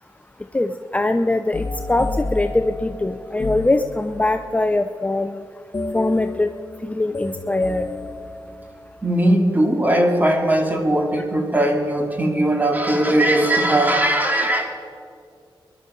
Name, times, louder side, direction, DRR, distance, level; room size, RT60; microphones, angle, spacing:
voice 1, 0.5-5.4 5.9-6.5 6.8-7.9, left 2 dB, 15° left, 7 dB, 0.6 m, -22 dB
sound 1, 1.5-4.5 5.7-9.0, left 2 dB, 40° left, 1.6 m, -31 dB
voice 2, 9.0-14.7, right 1 dB, 20° right, 3 dB, 2.5 m, -19 dB
21.5 x 11.5 x 5.5 m, 2.3 s
cardioid pair, 75°, 9 cm